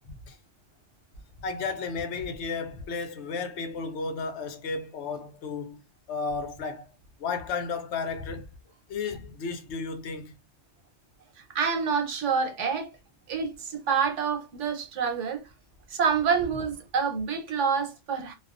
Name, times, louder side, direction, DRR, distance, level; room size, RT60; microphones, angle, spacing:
voice 1, 1.4-5.8 6.1-6.9 7.2-8.5 8.9-10.3, left 4 dB, 75° left, 0.9 m, -33 dB
voice 2, 11.4-12.9 13.3-15.4 15.9-18.3, right 6 dB, 90° right, 1.1 m, -27 dB
2.3 x 2.2 x 2.4 m
omnidirectional pair, 1.2 m